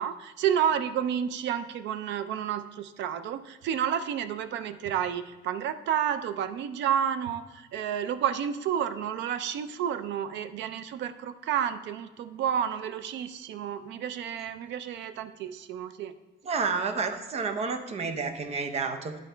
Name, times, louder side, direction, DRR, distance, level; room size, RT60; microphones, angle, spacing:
voice 1, 0.0-16.1, right 9 dB, 85° right, 12 dB, 0.5 m, -30 dB
voice 2, 16.4-19.2, right 4 dB, 35° right, 7 dB, 0.6 m, -30 dB
11.0 x 4.0 x 4.5 m, 1.2 s
cardioid pair, 175°, 18 cm